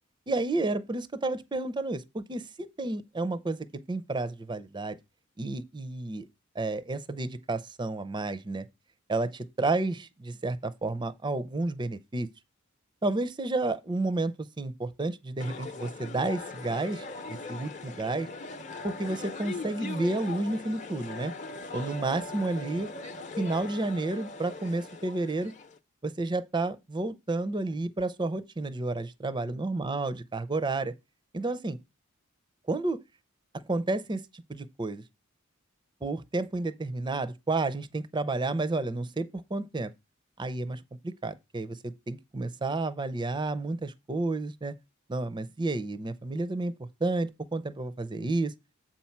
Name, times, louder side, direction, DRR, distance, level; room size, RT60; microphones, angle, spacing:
voice 1, 0.3-2.4 2.8-5.0 5.4-6.3 6.6-8.7 9.1-12.3 13.0-18.3 18.8-21.3 21.7-22.9 23.4-25.5 26.0-30.9 31.3-31.8 32.7-33.0 33.5-34.2 34.5-35.0 36.0-39.9 40.4-44.7 45.1-46.7 47.0-48.5, right 2 dB, 20° right, 0.5 m, -31 dB
sound 1, 15.4-25.8, left 3 dB, 35° left, 0.7 m, -40 dB
7.8 x 4.3 x 5.8 m
head